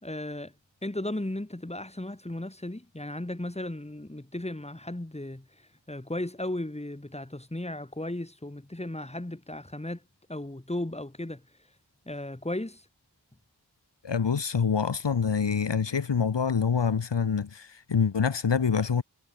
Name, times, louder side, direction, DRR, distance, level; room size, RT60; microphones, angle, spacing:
voice 1, 0.0-0.5 0.8-10.0 10.3-11.4 12.0-12.8, left 1 dB, 15° left, 3.1 m, -35 dB
voice 2, 14.0-19.0, left 6 dB, 70° left, 1.6 m, -26 dB
wide cardioid pair, 55°, 44 cm